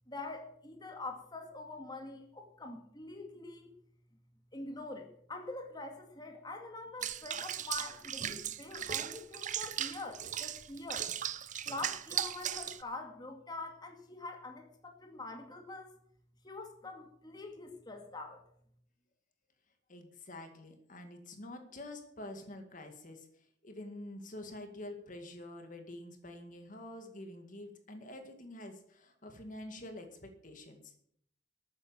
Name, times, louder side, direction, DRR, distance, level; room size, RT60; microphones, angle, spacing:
voice 1, 0.1-3.7 4.5-11.1 11.7-15.9 16.4-18.4, left 2 dB, 20° left, 4 dB, 2.1 m, -45 dB
Water / Bathtub (filling or washing), 7.0-12.8, right 10 dB, 40° right, 0.7 m, -37 dB
voice 2, 19.9-30.9, left 1 dB, 45° left, 5 dB, 2.1 m, -47 dB
13.5 x 9.3 x 8.9 m, 0.68 s
head